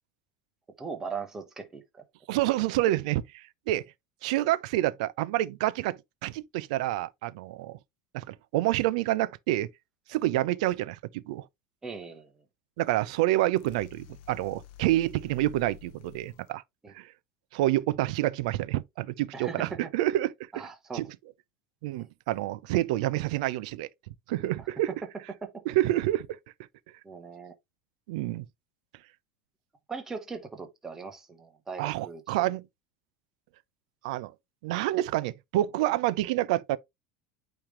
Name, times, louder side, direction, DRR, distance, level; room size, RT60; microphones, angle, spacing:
voice 1, 0.8-2.0 11.8-12.3 16.8-16.9 19.3-19.9 20.5-21.1 24.6-24.7 25.4-25.6 27.0-27.5 29.9-32.5, right 5 dB, 10° right, 1.2 m, -39 dB
voice 2, 2.3-3.8 4.2-7.8 8.1-9.7 10.1-11.5 12.8-16.6 16.9-17.1 17.5-20.7 20.9-21.1 21.8-23.9 24.3-24.9 25.7-26.4 28.1-28.5 31.8-32.7 34.0-34.3 34.6-36.8, right 15 dB, 65° right, 0.6 m, -28 dB
sound 1, 13.5-16.5, left 12 dB, 50° left, 0.8 m, -50 dB
8.9 x 3.4 x 3.3 m
supercardioid pair, 165°, 4 cm